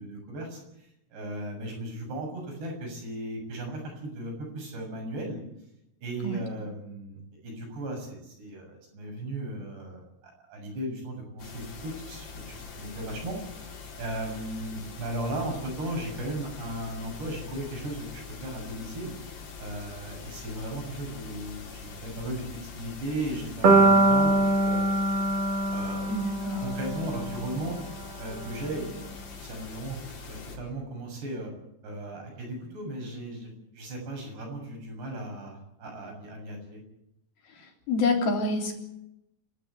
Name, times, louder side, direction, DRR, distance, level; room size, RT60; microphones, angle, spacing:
voice 1, 0.0-5.4 6.0-13.4 14.0-19.1 19.6-24.9 25.7-26.2 26.6-27.8 28.2-29.0 29.4-31.5 31.8-36.8, right 1 dB, 85° right, 2 dB, 9.1 m, -36 dB
sound 1, 11.4-30.6, left 5 dB, 80° left, 6.5 m, -43 dB
sound 2, 23.6-27.7, right 2 dB, 45° right, 3.3 m, -23 dB
voice 2, 26.1-26.6 37.9-38.8, left 2 dB, 65° left, 2 dB, 5.3 m, -27 dB
29.5 x 12.5 x 9.6 m, 0.85 s
omnidirectional pair, 4.7 m